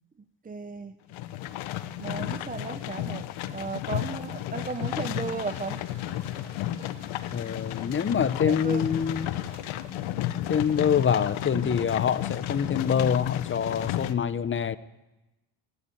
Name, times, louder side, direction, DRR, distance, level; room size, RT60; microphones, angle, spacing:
voice 1, 0.4-0.9 2.0-5.8 8.5-8.8, right 4 dB, 20° right, 0.6 m, -35 dB
sound 1, 1.1-14.1, left 13 dB, 80° left, 0.9 m, -33 dB
Mechanical fan, 4.6-10.1, right 3 dB, 70° right, 4.7 m, -53 dB
voice 2, 7.3-9.3 10.5-14.8, left 7 dB, 25° left, 0.6 m, -25 dB
15.0 x 9.7 x 8.5 m
cardioid pair, 100°, 48 cm